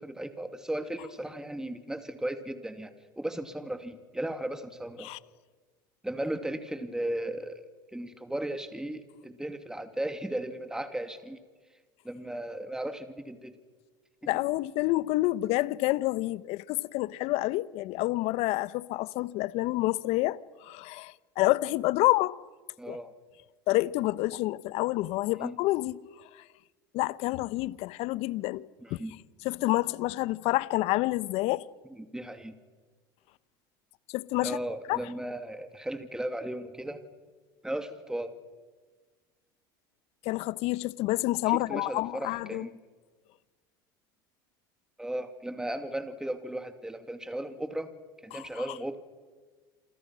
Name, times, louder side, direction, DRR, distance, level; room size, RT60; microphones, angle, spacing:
voice 1, 0.0-2.9 3.2-5.1 6.0-7.6 7.9-11.4 12.0-13.5 22.8-23.1 25.4-25.5 28.8-29.1 31.9-32.5 34.4-37.0 37.6-38.3 41.7-42.7 45.0-47.9 48.2-49.0, right 1 dB, 5° right, 2.6 m, -36 dB
voice 2, 14.3-22.4 22.9-23.0 23.7-26.0 26.3-26.4 26.9-28.6 28.9-29.0 29.4-31.7 34.1-34.6 34.9-35.0 40.2-42.7 48.3-48.5, left 18 dB, 60° left, 1.0 m, -28 dB
28.0 x 27.0 x 6.4 m
hypercardioid pair, 85°, 12 cm